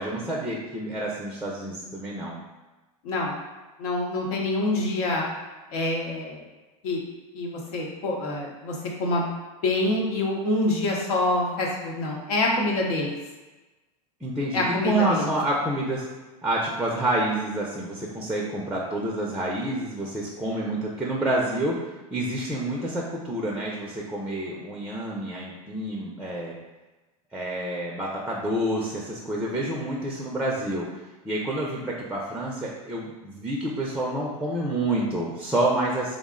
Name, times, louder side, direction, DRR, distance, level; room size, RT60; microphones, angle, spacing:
voice 1, 0.0-2.4 14.2-16.0 16.4-21.7 22.1-26.5 27.3-30.8 31.2-36.2, right 1 dB, 5° right, -3 dB, 0.4 m, -28 dB
voice 2, 3.8-5.3 5.7-6.4 6.8-7.0 7.3-9.3 9.6-13.1 14.5-15.3, left 2 dB, 75° left, -2 dB, 0.8 m, -26 dB
3.6 x 2.0 x 3.6 m, 1.2 s
supercardioid pair, 120°, 19 cm